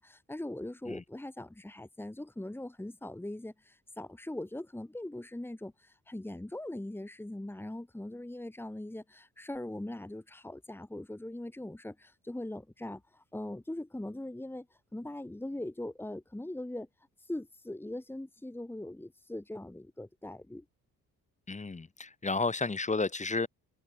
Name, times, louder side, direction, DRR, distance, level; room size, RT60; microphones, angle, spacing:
voice 1, 0.0-14.7 14.9-16.9 17.3-20.6, left 1 dB, 5° left, 2.7 m, -41 dB
voice 2, 21.5-23.5, left 3 dB, 25° left, 3.0 m, -32 dB
cardioid pair, 90°, 30 cm